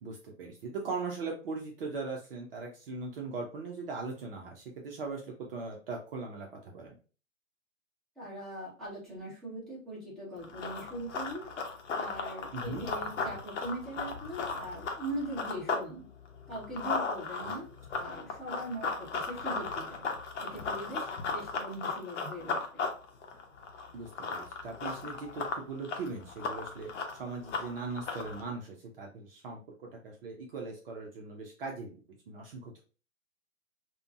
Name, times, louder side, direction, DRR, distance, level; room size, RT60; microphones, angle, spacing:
voice 1, 0.0-6.9 12.5-12.9 17.4-17.5 23.9-32.0 32.3-32.8, right 4 dB, 45° right, 0 dB, 0.6 m, -40 dB
voice 2, 8.2-11.5 11.9-16.0 16.5-17.7 17.9-20.0 20.4-22.8, right 1 dB, ahead, -9 dB, 1.2 m, -41 dB
Run, 10.4-15.9 16.2-28.4, left 4 dB, 60° left, 0.8 m, -36 dB
3.6 x 2.2 x 2.3 m, 0.36 s
figure-of-eight pair, 120°, 40 cm